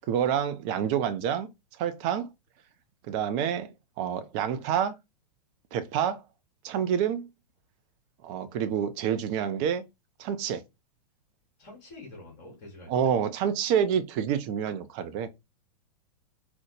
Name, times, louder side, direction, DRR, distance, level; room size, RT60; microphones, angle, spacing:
voice 1, 0.1-1.5 1.8-2.3 3.1-3.7 4.0-4.9 5.7-6.2 6.6-7.3 8.2-9.8 10.2-10.6 12.9-15.3, right 8 dB, 30° right, 0.4 m, -27 dB
voice 2, 11.6-13.1, left 2 dB, 35° left, 1.6 m, -46 dB
3.9 x 2.0 x 3.0 m
figure-of-eight pair, 105°, 20 cm